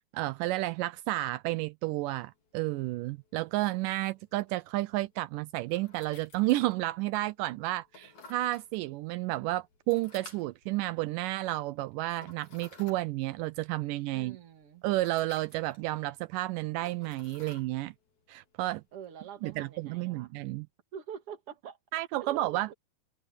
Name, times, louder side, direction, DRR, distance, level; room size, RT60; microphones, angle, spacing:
voice 1, 0.1-14.4 14.8-17.9 18.3-18.8 19.4-20.7 21.9-22.7, right 18 dB, 85° right, 2.2 m, -31 dB
sound 1, 2.2-19.7, left 3 dB, 60° left, 5.7 m, -58 dB
voice 2, 14.1-14.8 18.9-20.3 20.9-21.8 22.2-22.7, right 8 dB, 45° right, 2.7 m, -45 dB
omnidirectional pair, 3.8 m